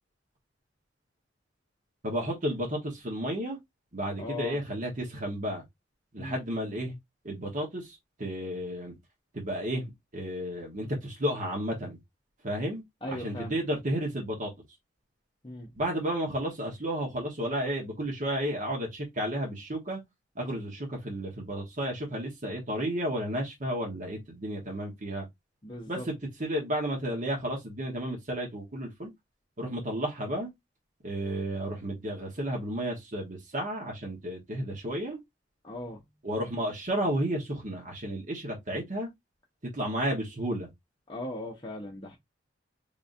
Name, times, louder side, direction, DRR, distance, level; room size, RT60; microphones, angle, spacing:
voice 1, 2.0-3.6 3.9-5.6 6.1-7.0 7.2-8.9 9.3-12.0 12.4-12.8 13.1-14.5 15.7-20.0 20.3-25.3 25.9-29.1 29.6-30.5 31.0-35.2 36.2-39.1 39.7-40.7, equal, 45° right, 1.2 m, -32 dB
voice 2, 4.2-4.6 6.2-6.4 13.0-13.5 15.4-15.7 25.6-26.1 35.6-36.0 41.1-42.2, left 1 dB, 25° left, 0.8 m, -38 dB
3.8 x 3.5 x 2.6 m
head